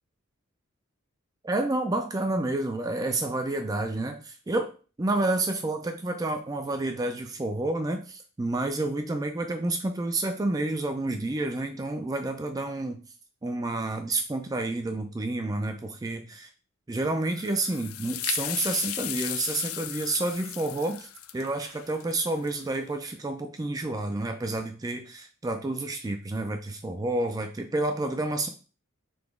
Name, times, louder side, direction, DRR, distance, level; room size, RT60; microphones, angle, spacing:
voice 1, 1.4-4.7 5.0-13.0 13.4-16.5 16.9-21.1 21.3-28.5, right 2 dB, 15° right, 6 dB, 0.3 m, -29 dB
sound 1, 17.2-22.8, left 11 dB, 85° left, 0.4 m, -36 dB
3.9 x 2.9 x 3.5 m, 0.36 s
head